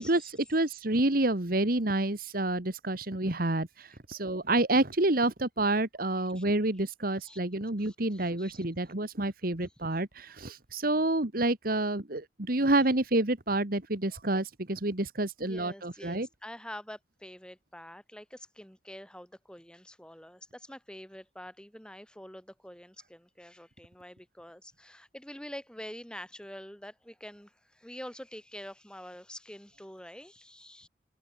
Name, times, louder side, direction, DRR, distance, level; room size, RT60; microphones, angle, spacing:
voice 1, 0.0-16.3, right 2 dB, 50° right, 1.9 m, -28 dB
voice 2, 7.8-8.6 9.6-9.7 15.4-30.9, equal, 5° left, 5.4 m, -46 dB
open air
head